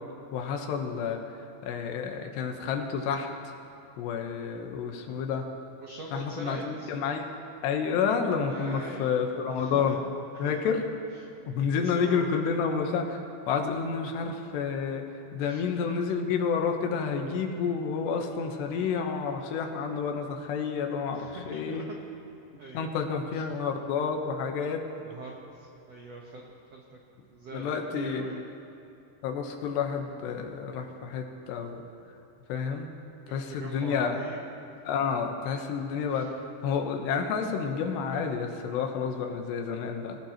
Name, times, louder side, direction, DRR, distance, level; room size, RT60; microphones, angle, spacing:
voice 1, 0.3-1.2 1.6-3.3 4.0-5.5 6.1-7.3 7.6-10.0 10.4-10.8 11.5-13.2 13.5-15.0 15.3-21.9 22.7-24.8 27.5-28.3 29.2-31.8 32.5-32.9 33.3-34.2 34.9-36.4 36.6-40.2, left 6 dB, 80° left, 3 dB, 3.2 m, -29 dB
voice 2, 4.3-4.6 5.8-6.9 8.4-9.1 9.5-10.0 10.3-10.6 11.2-12.4 15.4-15.6 21.1-21.8 22.6-22.9 23.3-23.4 25.0-27.0 27.3-28.4 33.3-34.4 36.1-36.2, right 3 dB, 80° right, -2 dB, 1.4 m, -43 dB
26.0 x 16.0 x 3.0 m, 2.8 s
omnidirectional pair, 5.0 m